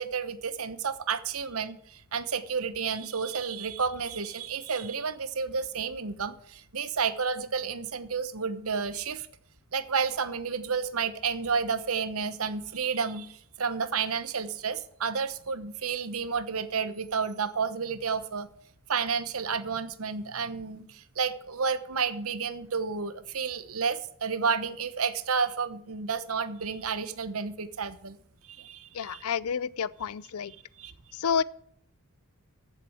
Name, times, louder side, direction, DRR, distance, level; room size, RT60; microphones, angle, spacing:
voice 1, 0.0-9.3 9.7-18.5 18.9-28.2 28.4-29.2 30.8-30.9, right 5 dB, 70° right, 1.0 m, -31 dB
voice 2, 28.9-30.5 31.1-31.4, left 7 dB, 75° left, 0.5 m, -29 dB
14.5 x 7.7 x 4.9 m
head